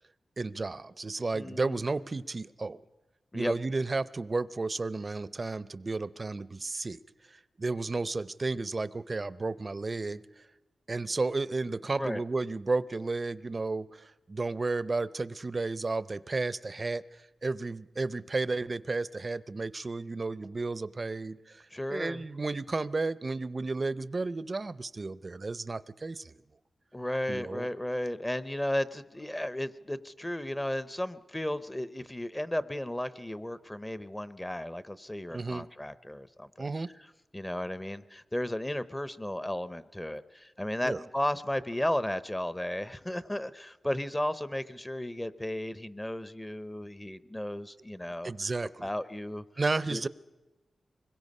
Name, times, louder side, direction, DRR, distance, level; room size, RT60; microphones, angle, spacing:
voice 1, 0.4-2.8 3.3-7.0 7.6-10.2 10.9-17.0 17.4-21.6 21.9-26.3 27.3-27.7 35.3-35.7 36.6-36.9 40.8-41.0 48.2-48.9 49.6-50.1, right 3 dB, 40° right, 17 dB, 0.6 m, -32 dB
voice 2, 1.3-1.9 3.3-3.5 12.0-12.2 21.7-22.2 26.9-36.7 37.3-48.5 48.8-49.4 49.9-50.0, left 1 dB, 15° left, 14 dB, 0.7 m, -34 dB
25.0 x 22.0 x 5.4 m, 1.1 s
wide cardioid pair, 75°, 0 cm